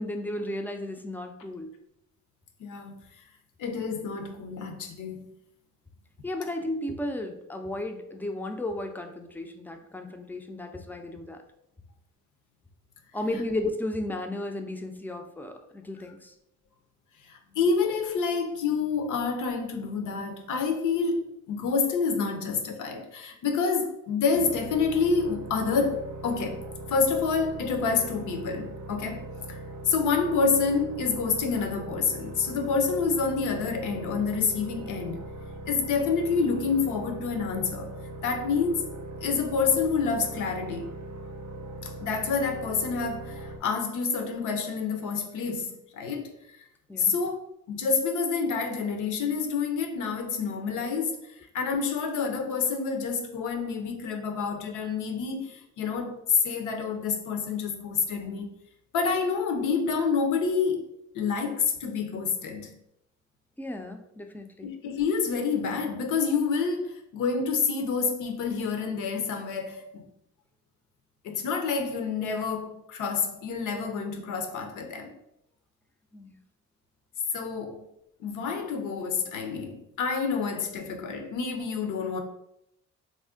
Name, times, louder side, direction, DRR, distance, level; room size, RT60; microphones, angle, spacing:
voice 1, 0.0-1.7 6.2-11.4 13.1-16.3 46.9-47.2 63.6-64.7 76.1-76.4, left 1 dB, 5° left, 0.3 m, -34 dB
voice 2, 2.6-3.0 3.6-5.3 17.3-26.6 26.9-29.2 29.5-29.6 29.9-35.2 35.7-37.9 38.2-38.8 39.2-40.9 41.8-46.3 47.0-47.4 47.7-51.2 51.5-58.5 58.9-60.9 61.1-62.8 64.6-70.0 71.2-75.1 77.3-77.8 78.2-82.2, left 5 dB, 75° left, 0.6 m, -28 dB
sound 1, 24.3-43.6, right 2 dB, 65° right, 0.5 m, -40 dB
2.5 x 2.1 x 3.5 m
cardioid pair, 70°, 30 cm